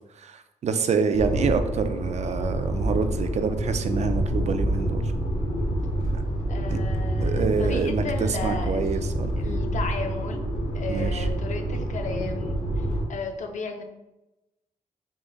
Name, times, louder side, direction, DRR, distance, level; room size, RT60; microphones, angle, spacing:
voice 1, 0.2-5.1 6.7-6.8 7.2-9.6 10.9-11.3, right 5 dB, 55° right, 9 dB, 0.4 m, -27 dB
sound 1, 1.1-13.0, right 1 dB, 80° left, 1.2 m, -27 dB
voice 2, 6.5-9.1 9.4-10.5 10.7-13.8, left 4 dB, 65° left, 4 dB, 0.6 m, -35 dB
3.8 x 3.1 x 3.8 m, 0.99 s
cardioid pair, 110°, 14 cm